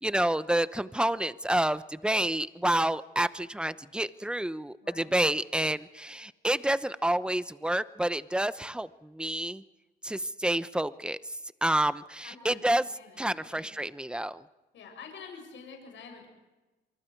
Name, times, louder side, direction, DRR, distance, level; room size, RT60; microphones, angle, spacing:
voice 1, 0.0-9.6 10.0-11.2 11.6-12.9 13.2-14.4, right 1 dB, 5° right, 14 dB, 0.9 m, -29 dB
voice 2, 4.8-5.1 12.2-13.7 14.7-16.3, left 5 dB, 70° left, 2 dB, 7.4 m, -48 dB
27.5 x 24.0 x 4.7 m, 1.1 s
cardioid pair, 90°, 20 cm